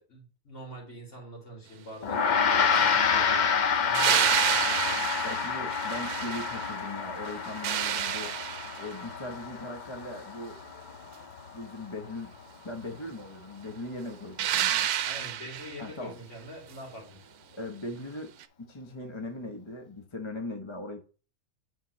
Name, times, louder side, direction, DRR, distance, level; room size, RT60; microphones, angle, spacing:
voice 1, 0.0-3.5 3.8-5.3 15.0-17.2, equal, 50° left, 3.2 m, -44 dB
Gong, 2.0-11.7, left 6 dB, 80° left, 0.4 m, -28 dB
sound 1, 3.9-6.9 7.3-9.0 14.4-15.8 18.4-18.5, right 11 dB, 80° right, 1.1 m, -29 dB
voice 2, 5.2-8.4 8.8-10.6 11.5-12.3 12.6-14.9 15.8-16.2 17.5-18.3 18.6-21.0, left 2 dB, 25° left, 0.8 m, -39 dB
8.7 x 4.7 x 3.0 m
omnidirectional pair, 1.6 m